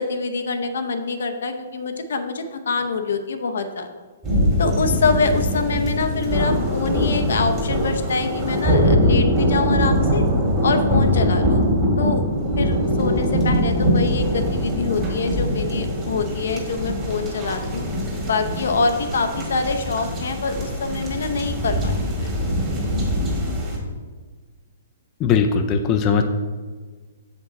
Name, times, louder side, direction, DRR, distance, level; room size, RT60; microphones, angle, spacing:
voice 1, 0.0-3.9 4.6-10.2 10.6-11.6 12.0-12.2 12.6-17.9 18.2-22.3, left 4 dB, 75° left, 7 dB, 0.7 m, -25 dB
sound 1, 4.2-23.8, equal, 20° right, 1.8 m, -22 dB
voice 2, 25.2-26.2, left 6 dB, 25° left, 5 dB, 0.5 m, -19 dB
7.3 x 5.3 x 4.0 m, 1.4 s
hypercardioid pair, 150°, 0 cm